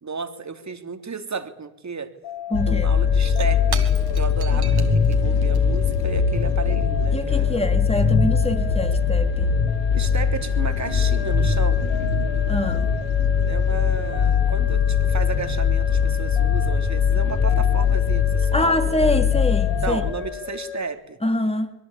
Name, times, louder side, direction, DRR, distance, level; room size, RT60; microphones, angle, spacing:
voice 1, 0.0-2.1 2.7-3.8 4.2-7.6 9.9-11.8 13.5-18.7 19.8-21.2, right 5 dB, 40° right, 3.4 m, -33 dB
sound 1, 2.2-20.8, left 8 dB, 65° left, 2.3 m, -35 dB
Shatter / Crushing, 2.4-2.5 2.7-7.6, right 7 dB, 55° right, 3.6 m, -40 dB
sound 2, 2.5-20.1, left 6 dB, 85° left, 2.6 m, -21 dB
voice 2, 2.5-2.9 7.1-9.5 12.5-12.8 18.5-20.0 21.2-21.7, left 1 dB, 15° left, 3.8 m, -24 dB
24.5 x 22.0 x 8.8 m
hypercardioid pair, 50°, 44 cm